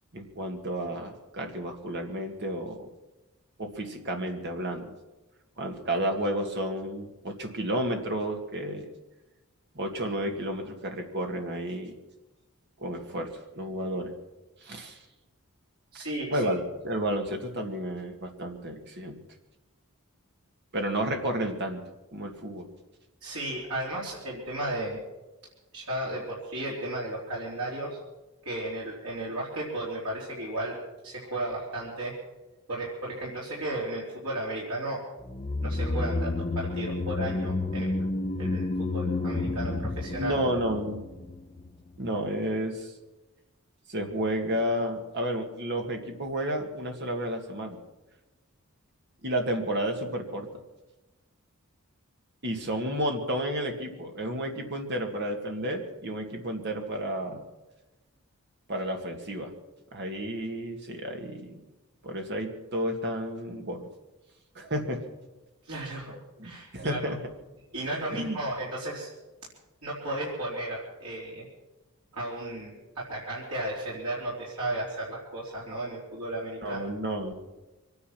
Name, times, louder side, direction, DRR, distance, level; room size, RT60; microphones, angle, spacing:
voice 1, 0.1-2.9 3.6-5.0 5.6-8.9 9.8-12.0 12.8-13.3 13.5-14.1 14.6-15.0 16.3-19.2 20.7-21.8 22.1-22.7 40.2-41.0 42.0-42.9 43.9-47.8 49.2-50.6 52.4-57.4 58.7-59.5 59.9-61.6 62.0-63.8 64.6-65.0 66.4-67.2 68.1-68.4 76.6-77.3, right 1 dB, 50° right, 3 dB, 2.2 m, -31 dB
voice 2, 15.9-16.4 23.2-25.0 25.7-28.0 28.4-30.8 31.0-32.2 32.7-35.0 35.6-38.1 38.4-40.4 65.7-66.1 66.4-67.1 67.7-69.1 69.8-71.5 72.1-76.8, right 1 dB, 85° right, -5 dB, 3.7 m, -34 dB
sound 1, 35.3-41.7 41.9-42.0, left 2 dB, 25° left, 0.7 m, -30 dB
24.0 x 9.8 x 6.0 m, 1.1 s
head